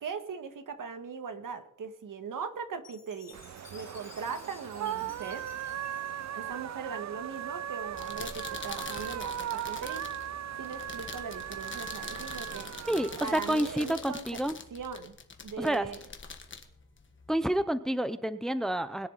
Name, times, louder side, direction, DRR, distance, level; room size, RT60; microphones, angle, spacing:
voice 1, 0.0-3.4 3.7-5.4 6.3-10.0 10.6-12.7 13.2-14.4 14.7-15.1 15.4-16.0, right 6 dB, 80° right, 8 dB, 1.6 m, -39 dB
Chime, 2.8-7.2, left 7 dB, 55° left, 1.8 m, -54 dB
sound 1, 3.3-13.9, right 10 dB, 60° right, 0.4 m, -38 dB
sound 2, 7.8-17.6, left 4 dB, 40° left, 1.4 m, -44 dB
voice 2, 12.9-14.6 15.6-15.9 17.3-19.1, right 1 dB, ahead, 12 dB, 0.6 m, -29 dB
21.5 x 10.5 x 4.0 m, 0.75 s
wide cardioid pair, 165°, 32 cm